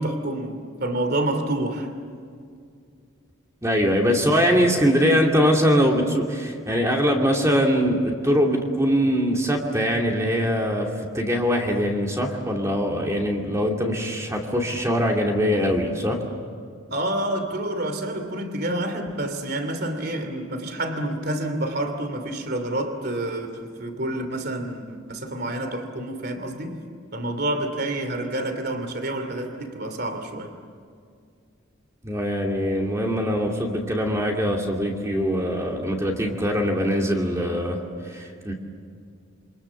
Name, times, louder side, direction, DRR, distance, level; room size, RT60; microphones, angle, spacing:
voice 1, 0.0-1.9 4.1-4.2 16.9-26.8 27.1-30.5, right 1 dB, 50° right, 8 dB, 3.0 m, -28 dB
voice 2, 3.6-16.2 32.0-38.5, equal, 15° right, 0 dB, 2.5 m, -22 dB
28.0 x 26.0 x 7.2 m, 2.2 s
head